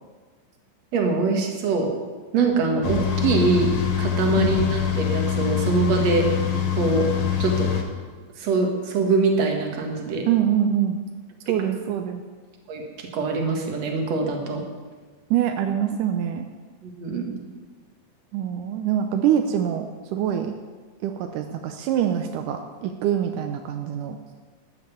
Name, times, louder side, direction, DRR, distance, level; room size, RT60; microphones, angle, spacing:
voice 1, 0.9-1.9 2.3-3.7 4.0-6.3 6.8-7.1 7.4-7.7 8.4-10.3 12.7-14.6 16.8-17.3, right 3 dB, 60° right, 2 dB, 2.8 m, -23 dB
sound 1, 2.8-7.8, left 8 dB, 55° left, 2.0 m, -24 dB
voice 2, 10.3-11.0 11.5-12.2 15.3-16.5 18.3-20.5 21.0-24.2, right 9 dB, 85° right, 6 dB, 2.2 m, -24 dB
13.0 x 7.8 x 8.4 m, 1.4 s
omnidirectional pair, 3.7 m